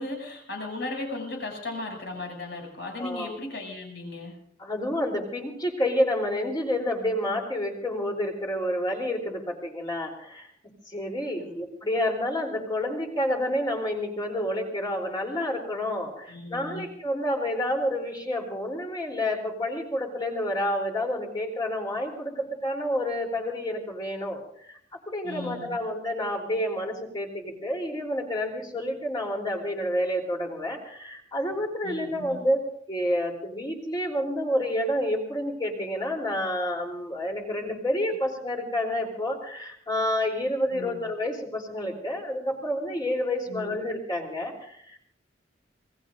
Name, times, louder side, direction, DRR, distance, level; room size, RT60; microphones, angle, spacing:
voice 1, 0.0-4.4 11.4-11.5 16.3-16.9 25.2-25.7 31.8-32.4 40.7-41.0 43.5-43.8, left 2 dB, 65° left, 1 dB, 7.2 m, -36 dB
voice 2, 3.0-3.4 4.6-10.5 10.9-24.4 24.7-24.8 25.1-32.6 32.9-45.0, left 1 dB, 25° left, 0 dB, 3.5 m, -29 dB
27.5 x 20.0 x 2.6 m, 0.66 s
head